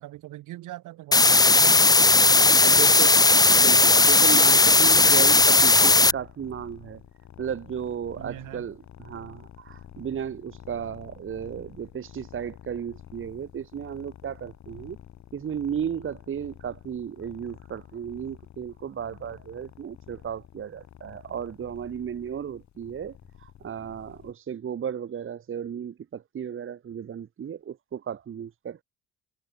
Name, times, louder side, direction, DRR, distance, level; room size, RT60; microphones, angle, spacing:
voice 1, 0.0-3.1 3.7-3.9 8.2-8.7, right 16 dB, 90° right, 4.3 m, -42 dB
sound 1, 1.1-6.1, left 3 dB, 15° left, 0.7 m, -17 dB
voice 2, 2.6-3.2 3.6-7.0 7.4-15.0 15.3-28.8, right 8 dB, 45° right, 1.1 m, -34 dB
sound 2, 4.6-24.3, left 10 dB, 65° left, 6.8 m, -49 dB
cardioid pair, 90°, 30 cm